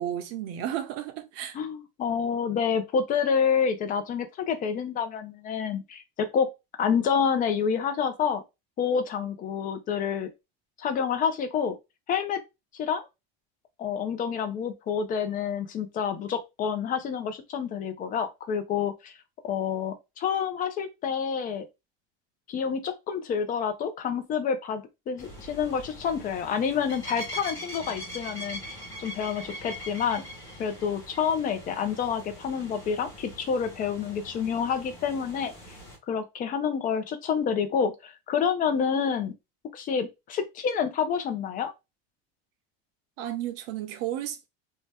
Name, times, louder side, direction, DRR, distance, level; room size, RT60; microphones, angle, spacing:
voice 1, 0.0-1.6 43.2-44.5, right 11 dB, 55° right, 0.7 m, -33 dB
voice 2, 1.5-6.5 6.8-8.4 8.8-10.3 10.8-11.8 12.1-12.4 12.7-13.1 13.8-19.1 19.4-21.6 22.5-28.6 29.0-30.2 30.6-35.8 36.1-39.3 39.7-41.7, left 7 dB, 30° left, 0.5 m, -28 dB
sound 1, 25.2-36.0, equal, 10° left, 0.9 m, -42 dB
2.7 x 2.2 x 3.3 m
cardioid pair, 155°, 31 cm